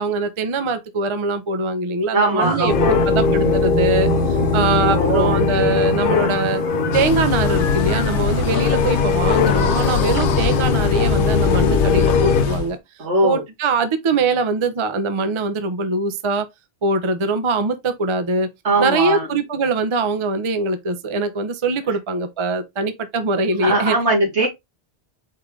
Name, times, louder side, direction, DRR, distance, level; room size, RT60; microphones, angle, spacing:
voice 1, 0.0-2.7 3.1-4.1 4.5-6.6 6.9-12.8 13.2-16.5 16.8-18.5 18.8-24.0, right 3 dB, 35° right, 0.5 m, -22 dB
voice 2, 2.1-3.0 4.8-5.4 13.0-13.4 18.6-19.3 23.6-24.5, right 2 dB, 80° right, 2.3 m, -20 dB
sound 1, 2.4-10.4, right 4 dB, 50° right, 1.7 m, -27 dB
sound 2, 2.7-12.5, left 6 dB, 60° left, 0.7 m, -21 dB
sound 3, 6.9-12.7, left 6 dB, 80° left, 1.0 m, -22 dB
4.7 x 3.7 x 3.1 m
omnidirectional pair, 1.1 m